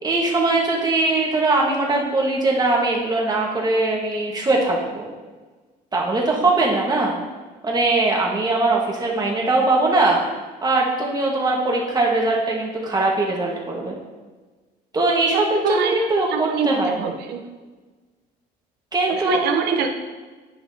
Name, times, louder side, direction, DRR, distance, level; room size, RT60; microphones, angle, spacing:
voice 1, 0.0-5.1 5.9-7.2 7.6-10.2 10.6-14.0 14.9-17.1 18.9-19.5, right 2 dB, 25° right, -2 dB, 1.6 m, -21 dB
voice 2, 15.3-16.0 16.3-17.4 19.1-19.9, right 5 dB, 80° right, 4 dB, 0.9 m, -24 dB
9.6 x 5.9 x 2.9 m, 1.3 s
cardioid pair, 110°, 17 cm